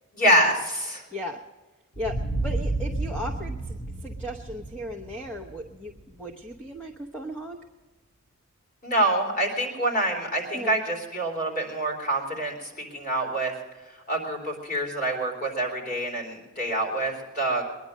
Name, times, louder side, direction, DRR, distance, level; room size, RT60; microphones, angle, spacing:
voice 1, 0.1-1.0 8.8-13.5 14.1-17.7, right 1 dB, 40° left, 1 dB, 3.7 m, -26 dB
voice 2, 1.1-1.4 2.0-7.6 10.5-10.7, equal, 5° left, 1 dB, 0.8 m, -36 dB
sound 1, 2.0-6.6, right 2 dB, 85° left, 3.0 m, -32 dB
21.5 x 10.5 x 6.5 m, 1.3 s
head